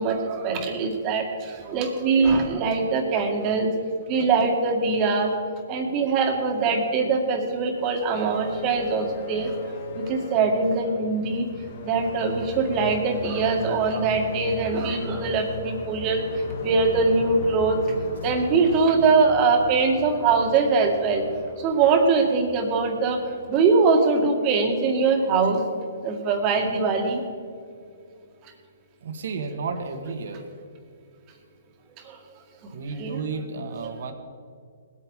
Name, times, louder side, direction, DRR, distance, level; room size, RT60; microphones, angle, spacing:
voice 1, 0.0-3.7 4.1-5.3 5.7-9.5 10.0-11.4 11.8-16.2 16.6-17.8 18.2-21.2 21.6-23.2 23.5-25.6 26.0-27.2 33.0-33.2, right 4 dB, 30° right, 3 dB, 2.0 m, -22 dB
sound 1, 7.6-24.5, left 3 dB, 55° left, 1.8 m, -38 dB
voice 2, 29.0-30.4 32.7-34.1, right 4 dB, 65° right, 6 dB, 1.6 m, -32 dB
19.5 x 8.8 x 4.9 m, 2.3 s
hypercardioid pair, 145°, 0 cm